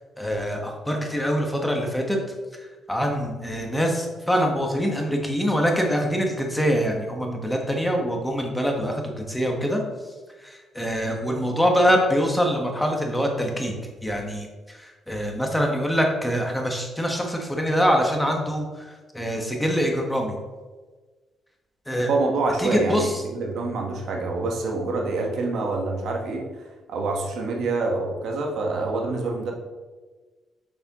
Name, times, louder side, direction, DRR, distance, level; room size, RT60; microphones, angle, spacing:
voice 1, 0.2-2.2 2.5-9.8 10.4-13.7 14.0-20.4 21.9-22.1 22.6-23.2, equal, 5° left, 1 dB, 1.3 m, -24 dB
voice 2, 22.1-29.5, right 3 dB, 70° right, 1 dB, 1.2 m, -26 dB
6.8 x 6.5 x 3.0 m, 1.3 s
cardioid pair, 90°, 0 cm